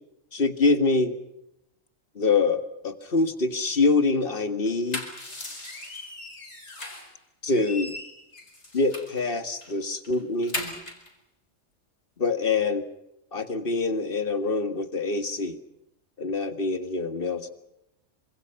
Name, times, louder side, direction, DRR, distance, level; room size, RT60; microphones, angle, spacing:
voice 1, 0.3-1.2 2.2-5.1 7.4-7.9 8.7-10.6 12.2-12.8 13.3-15.6 16.2-17.5, left 3 dB, 45° left, 9 dB, 2.0 m, -25 dB
sound 1, 4.7-7.1 7.5-9.2 9.6-9.7 10.0-11.1, left 1 dB, 60° left, 5.1 m, -37 dB
27.0 x 26.0 x 5.8 m, 0.85 s
omnidirectional pair, 1.3 m